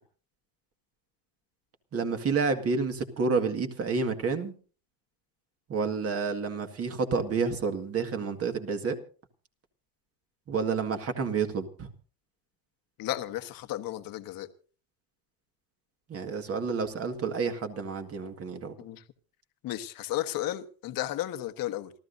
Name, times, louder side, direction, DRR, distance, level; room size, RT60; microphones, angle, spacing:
voice 1, 1.9-4.5 5.7-9.0 10.5-11.9 16.1-18.8, right 5 dB, 30° right, 1.9 m, -29 dB
voice 2, 13.0-14.5 18.8-19.0 19.6-21.9, left 14 dB, 50° left, 1.4 m, -33 dB
28.0 x 13.5 x 2.7 m
cardioid pair, 140°, 45 cm